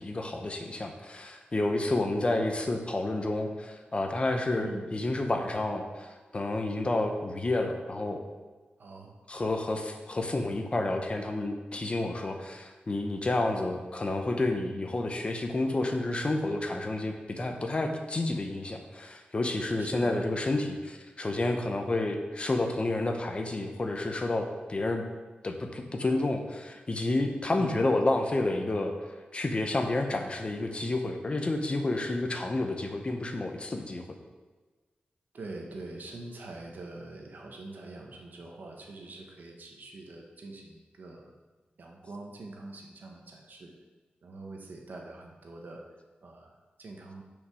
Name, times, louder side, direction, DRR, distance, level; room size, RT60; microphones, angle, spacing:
voice 1, 0.0-8.2 9.3-25.0 25.4-28.9 29.3-34.0, left 2 dB, 35° left, 4 dB, 0.9 m, -30 dB
voice 2, 8.8-9.1 19.8-20.2 27.6-27.9 35.3-41.3 41.8-43.7 44.2-45.8 46.2-47.2, right 2 dB, 60° right, 1 dB, 1.4 m, -44 dB
6.6 x 5.3 x 6.2 m, 1.3 s
wide cardioid pair, 105°, 3 cm